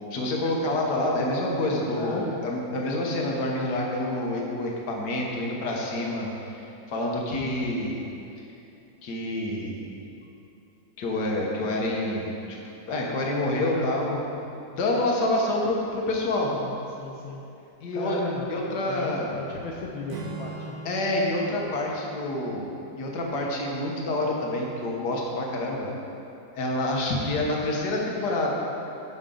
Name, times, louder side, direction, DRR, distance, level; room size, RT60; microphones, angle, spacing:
voice 1, 0.1-8.0 9.0-9.9 11.0-12.6 12.9-14.2 14.7-16.5 17.8-18.2 18.5-19.4 20.8-25.9 26.5-28.6, left 1 dB, 60° left, -2 dB, 1.7 m, -27 dB
voice 2, 2.0-2.4 13.6-14.0 16.4-17.4 17.9-20.8, left 3 dB, 80° left, -2 dB, 1.5 m, -36 dB
Acoustic guitar / Strum, 20.1-23.6, right 3 dB, 65° right, 1.5 m, -41 dB
11.0 x 6.8 x 3.8 m, 2.8 s
omnidirectional pair, 2.1 m